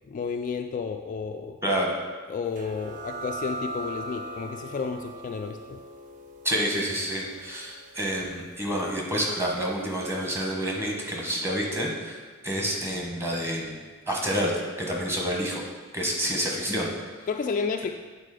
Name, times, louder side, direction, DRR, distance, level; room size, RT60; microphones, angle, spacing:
voice 1, 0.1-1.6 2.3-5.8 17.3-17.9, left 5 dB, 40° left, 5 dB, 0.3 m, -31 dB
voice 2, 1.6-1.9 6.4-12.2 12.4-14.5 14.8-15.6 15.9-16.9, equal, 10° right, -2 dB, 1.3 m, -28 dB
sound 1, 2.5-9.8, right 1 dB, 40° right, 0.7 m, -40 dB
8.3 x 4.1 x 5.0 m, 1.4 s
head